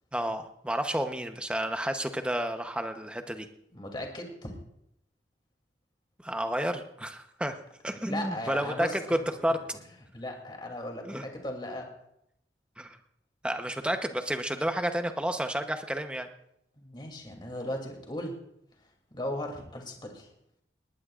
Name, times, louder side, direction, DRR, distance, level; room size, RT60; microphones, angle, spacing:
voice 1, 0.1-3.5 6.2-7.6 7.8-9.8 11.1-11.3 12.8-13.0 13.4-16.3, right 1 dB, 5° right, 6 dB, 0.9 m, -31 dB
voice 2, 3.7-4.6 8.1-9.2 10.1-11.9 16.8-18.4 19.1-20.3, left 1 dB, 25° left, 2 dB, 2.8 m, -37 dB
19.5 x 19.0 x 2.5 m, 0.78 s
head